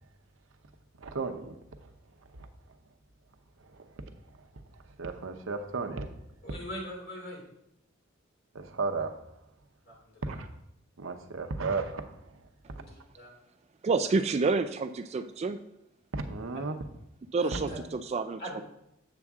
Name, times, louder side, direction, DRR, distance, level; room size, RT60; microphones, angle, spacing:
voice 1, 1.0-1.6 1.8-1.9 2.4-2.5 3.6-3.8 5.0-6.1 8.5-9.2 10.2-10.5 11.0-12.4 16.1-16.7, right 4 dB, 70° right, 0.8 m, -34 dB
voice 2, 6.4-7.4 9.8-10.4 12.7-13.3 17.4-17.8 18.4-18.6, equal, 50° left, 2.9 m, -42 dB
voice 3, 13.8-15.6 17.3-18.6, right 4 dB, 30° right, 0.3 m, -29 dB
7.6 x 7.1 x 3.6 m
head